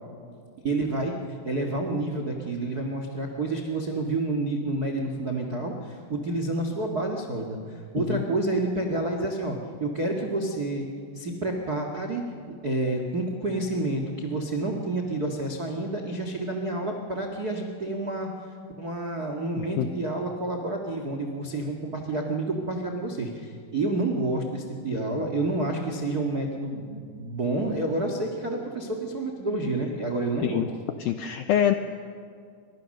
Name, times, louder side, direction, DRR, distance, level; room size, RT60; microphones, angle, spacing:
voice 1, 0.6-1.1 1.4-10.9 11.1-12.2 12.6-18.3 18.8-30.7, right 2 dB, 75° right, 3 dB, 0.8 m, -29 dB
voice 2, 19.6-19.9 30.4-30.7 31.0-31.7, left 10 dB, 80° left, 8 dB, 2.1 m, -25 dB
29.5 x 25.0 x 6.6 m, 2.2 s
omnidirectional pair, 5.2 m